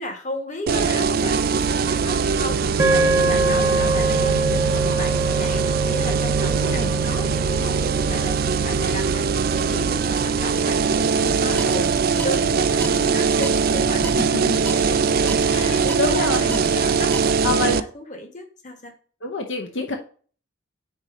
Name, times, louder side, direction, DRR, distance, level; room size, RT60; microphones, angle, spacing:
voice 1, 0.0-18.9, left 1 dB, 35° left, 4 dB, 1.4 m, -34 dB
sound 1, 0.7-17.8, right 5 dB, 45° right, 0.4 m, -21 dB
sound 2, 2.8-11.2, right 2 dB, 10° right, 0.9 m, -26 dB
voice 2, 6.5-7.0 14.0-14.6 15.4-16.6 17.4-17.8 19.2-20.0, left 3 dB, 65° left, 3 dB, 0.8 m, -27 dB
sound 3, 11.2-17.5, left 1 dB, 10° left, 0.5 m, -38 dB
5.3 x 4.1 x 5.1 m, 0.42 s
head